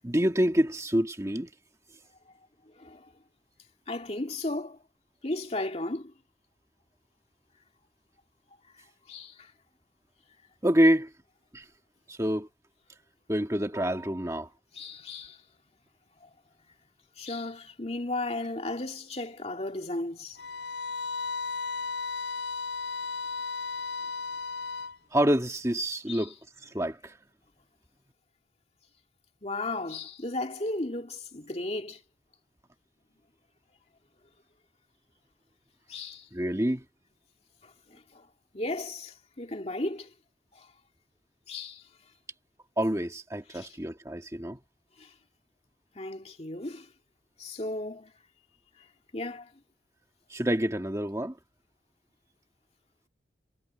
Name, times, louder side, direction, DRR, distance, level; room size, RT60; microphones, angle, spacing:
voice 1, 0.0-1.5 10.6-11.1 11.5-11.7 12.1-12.5 13.3-14.5 25.1-26.3 26.6-27.2 36.3-36.8 42.8-44.6 50.3-51.4, equal, 15° right, 1.7 m, -27 dB
voice 2, 2.8-3.1 3.9-4.8 5.2-6.1 9.1-9.5 14.7-15.4 16.2-16.3 17.2-20.4 26.1-26.3 29.4-32.0 35.9-36.3 37.6-38.3 38.5-40.1 40.5-40.7 41.5-41.8 43.5-43.7 45.0-45.1 45.9-46.9 47.4-48.1 48.8-48.9 49.1-49.5, left 2 dB, 35° left, 2.3 m, -35 dB
sound 1, 20.4-25.0, left 4 dB, 75° left, 3.9 m, -34 dB
head